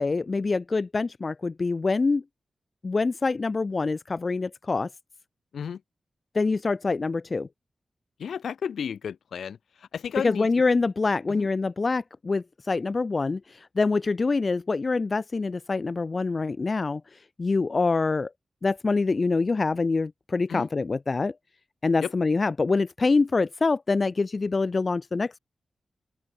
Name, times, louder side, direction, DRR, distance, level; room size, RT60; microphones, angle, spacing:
voice 1, 0.0-2.2 2.8-4.9 6.3-7.5 10.2-17.0 17.4-18.3 18.6-21.3 21.8-25.4, left 3 dB, 50° left, 0.3 m, -25 dB
voice 2, 8.2-10.5 11.3-11.5 20.5-20.7 22.0-22.1, left 7 dB, 90° left, 3.6 m, -33 dB
open air
cardioid pair, 55°, 0 cm